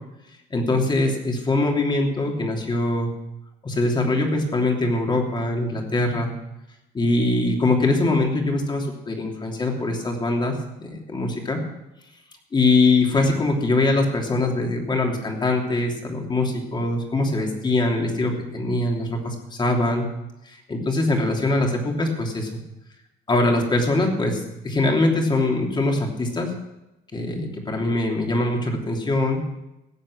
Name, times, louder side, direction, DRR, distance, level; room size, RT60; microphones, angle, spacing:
voice 1, 0.5-3.1 3.6-6.3 6.9-11.6 12.5-20.1 20.5-22.5 23.3-26.5 27.1-29.4, left 2 dB, 25° left, 2 dB, 3.1 m, -22 dB
17.5 x 7.7 x 6.5 m, 0.94 s
cardioid pair, 110°, 17 cm